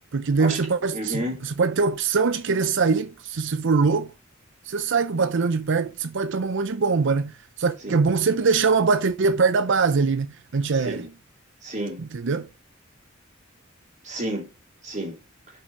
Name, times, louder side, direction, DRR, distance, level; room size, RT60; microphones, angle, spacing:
voice 1, 0.1-4.1 4.7-11.1 12.0-12.5, right 4 dB, 65° right, 0.6 m, -23 dB
voice 2, 0.9-1.4 7.8-8.0 10.8-11.1 11.6-12.0 14.0-14.5 14.8-15.2, right 1 dB, 35° right, 3.4 m, -30 dB
6.8 x 5.6 x 5.9 m
head